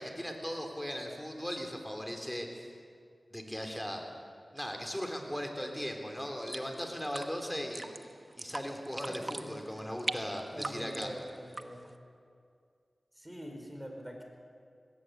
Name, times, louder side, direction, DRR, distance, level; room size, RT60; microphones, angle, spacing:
voice 1, 0.0-2.7 3.3-4.0 4.5-7.8 8.4-11.1, equal, 10° left, 3 dB, 3.7 m, -38 dB
sound 1, 6.4-12.0, right 2 dB, 45° right, 1.2 m, -42 dB
voice 2, 9.0-9.5 10.5-11.8 13.2-14.2, equal, 15° right, 2 dB, 4.8 m, -44 dB
19.5 x 17.5 x 8.3 m, 2.2 s
cardioid pair, 40°, 0 cm